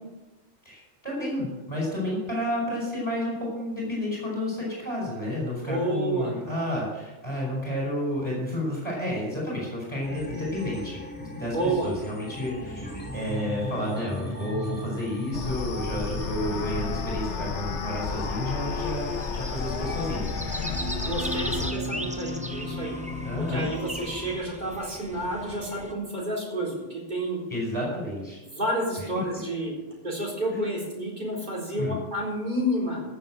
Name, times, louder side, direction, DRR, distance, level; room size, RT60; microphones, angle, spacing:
voice 1, 0.6-12.9 13.1-20.3 23.2-23.6 27.5-28.4 30.5-30.6 31.8-32.0, left 1 dB, 25° left, -4 dB, 5.1 m, -31 dB
voice 2, 5.6-6.4 11.5-11.9 20.9-23.0 23.5-27.4 28.4-29.7 30.0-33.0, right 1 dB, 40° right, -3 dB, 4.3 m, -30 dB
sound 1, 10.0-24.4, left 1 dB, 10° left, 2.9 m, -37 dB
sound 2, 15.3-21.7, left 5 dB, 80° left, 1.3 m, -32 dB
sound 3, 18.8-25.9, right 1 dB, 5° right, 0.8 m, -38 dB
14.5 x 7.2 x 7.7 m, 1.1 s
omnidirectional pair, 1.2 m